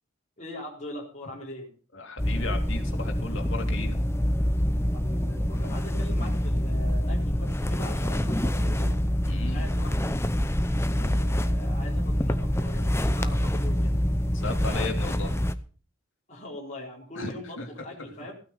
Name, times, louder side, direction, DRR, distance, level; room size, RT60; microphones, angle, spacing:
voice 1, 0.4-1.7 4.9-8.9 9.5-10.2 10.8-14.0 16.3-18.3, left 1 dB, 35° left, -3 dB, 4.0 m, -41 dB
voice 2, 1.9-3.9 9.3-9.7 14.3-15.4 17.1-17.7 18.0-18.3, left 3 dB, 60° left, 3 dB, 3.2 m, -36 dB
sound 1, 2.2-15.5, equal, 10° left, 0.7 m, -26 dB
16.0 x 9.3 x 5.5 m, 0.39 s
head